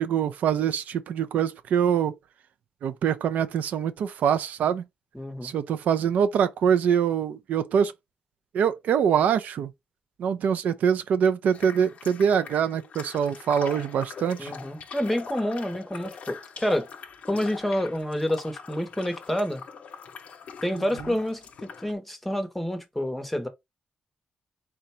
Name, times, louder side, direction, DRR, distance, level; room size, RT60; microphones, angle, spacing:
voice 1, 0.0-2.2 2.8-4.8 5.4-7.9 8.5-9.7 10.2-14.5 20.8-21.2, right 8 dB, 80° right, 0.4 m, -24 dB
voice 2, 5.2-5.5 14.4-16.9 17.3-19.6 20.6-21.4 21.8-23.5, left 1 dB, 5° left, 0.7 m, -28 dB
sound 1, 11.5-21.9, left 6 dB, 55° left, 0.6 m, -43 dB
3.8 x 2.2 x 4.1 m
wide cardioid pair, 145°, 3 cm